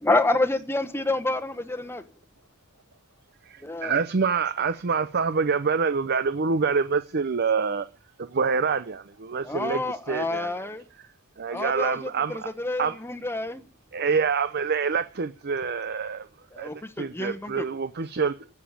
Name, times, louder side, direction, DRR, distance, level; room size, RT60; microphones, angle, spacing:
voice 1, 0.0-2.0 3.6-4.0 9.4-10.8 11.5-13.6 16.5-17.7, left 2 dB, 10° left, 1.1 m, -28 dB
voice 2, 2.7-3.5 3.9-4.9 7.1-7.6 9.1-9.2 10.3-10.4 13.3-13.4 14.3-14.5 15.1-15.3 15.9-16.3 17.8-17.9 18.4-18.5, right 1 dB, 90° right, 3.2 m, -59 dB
voice 3, 3.5-7.8 8.3-10.5 11.4-12.5 12.8-13.0 13.9-16.3 16.6-18.3, right 5 dB, 45° right, 0.6 m, -26 dB
15.5 x 7.1 x 8.8 m
head